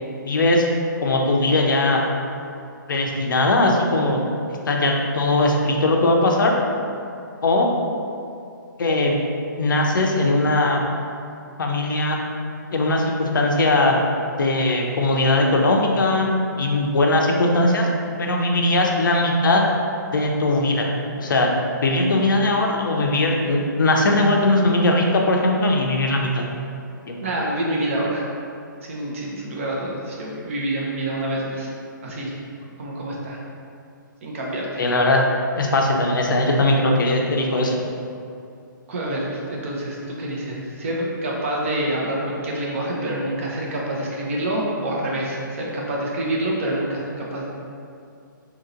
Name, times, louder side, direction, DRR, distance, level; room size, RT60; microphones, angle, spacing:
voice 1, 0.2-0.6 1.0-2.0 2.9-4.2 4.7-6.6 7.4-7.7 8.8-9.2 9.6-10.8 11.6-12.2 12.7-13.9 14.4-16.3 16.6-17.9 18.2-19.7 20.1-20.9 21.2-21.5 21.8-26.4 27.1-27.2 34.8-35.2 35.5-37.8, left 2 dB, 70° left, 1 dB, 0.6 m, -19 dB
voice 2, 27.2-28.3 28.8-31.7 32.0-32.4 32.8-33.4 34.2-34.9 38.9-47.5, right 1 dB, 40° right, -3 dB, 0.6 m, -27 dB
2.9 x 2.8 x 3.8 m, 2.5 s
hypercardioid pair, 165°, 11 cm